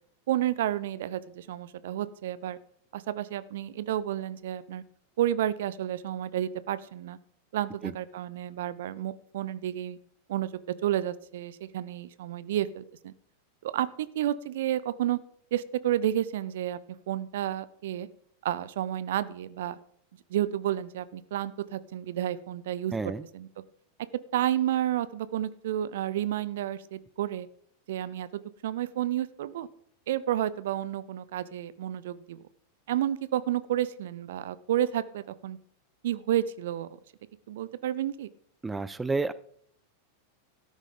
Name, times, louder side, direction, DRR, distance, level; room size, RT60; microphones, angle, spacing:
voice 1, 0.3-2.6 2.9-4.8 5.2-7.2 7.5-10.0 10.3-13.1 13.6-15.2 15.5-16.8 17.1-18.1 18.4-19.8 20.3-22.9 23.3-23.5 24.3-27.5 27.9-28.3 28.6-29.7 30.1-32.4 32.9-35.6 36.0-36.9 37.5-38.3, right 12 dB, 55° right, 17 dB, 0.6 m, -30 dB
voice 2, 22.9-23.2 38.6-39.3, right 3 dB, 10° right, 17 dB, 0.5 m, -30 dB
13.5 x 12.5 x 3.8 m, 0.63 s
figure-of-eight pair, 90°, 0 cm